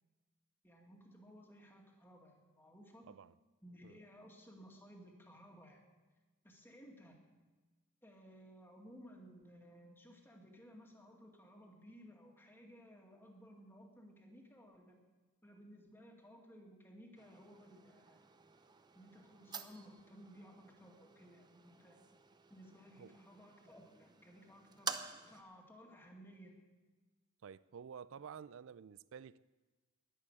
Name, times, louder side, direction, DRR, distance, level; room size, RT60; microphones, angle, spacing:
voice 1, 0.6-3.1 3.6-5.8 6.4-7.2 8.0-15.0 15.4-18.2 18.9-22.0 22.5-26.5, equal, 10° left, 2.1 m, -58 dB
Subway ticket machine coin slot opens and cancels, 17.2-25.4, right 5 dB, 20° right, 0.6 m, -50 dB
voice 2, 27.4-29.4, right 7 dB, 60° right, 0.4 m, -51 dB
11.0 x 11.0 x 8.7 m
head